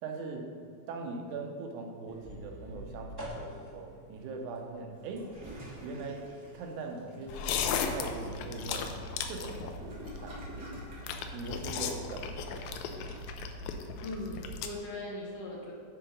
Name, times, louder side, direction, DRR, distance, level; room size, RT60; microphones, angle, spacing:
voice 1, 0.0-0.5 0.9-5.3 5.8-6.2 6.5-8.9 9.3-10.4 11.3-12.6, right 3 dB, 90° right, 2 dB, 2.3 m, -41 dB
sound 1, 2.1-13.2, right 1 dB, 20° right, 0.7 m, -50 dB
Toilet flush, 4.9-11.1, equal, 45° right, 1.7 m, -50 dB
sound 2, 7.3-14.7, left 6 dB, 85° left, 2.0 m, -36 dB
voice 2, 14.0-15.7, left 2 dB, 65° left, -2 dB, 2.0 m, -39 dB
10.0 x 3.9 x 5.1 m, 2.3 s
omnidirectional pair, 3.4 m